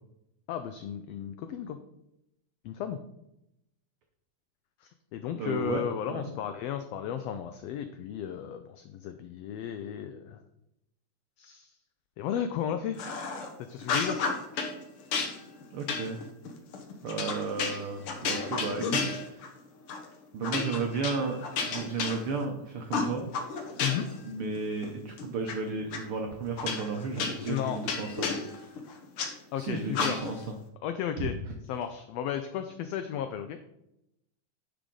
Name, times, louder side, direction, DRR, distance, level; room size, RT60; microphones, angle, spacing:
voice 1, 0.5-1.8 2.6-3.0 4.8-10.4 11.4-11.7 12.2-13.0 13.6-14.2 23.8-24.1 27.5-27.8 29.5-30.3 30.8-31.4 31.7-33.6, left 9 dB, 90° left, 9 dB, 1.4 m, -34 dB
voice 2, 5.3-6.4 15.7-16.2 17.0-19.6 20.3-23.3 24.2-28.8 29.6-30.4 31.2-31.3, right 4 dB, 85° right, 3 dB, 1.2 m, -34 dB
sound 1, 13.0-13.5 13.8-14.7 15.1-19.6 19.9-20.1 20.4-22.5 22.9-24.2 24.6-25.5 25.9-26.0 26.6-29.3 29.9-30.5, left 4 dB, 60° left, 1.5 m, -32 dB
10.0 x 5.1 x 3.8 m, 0.85 s
omnidirectional pair, 3.4 m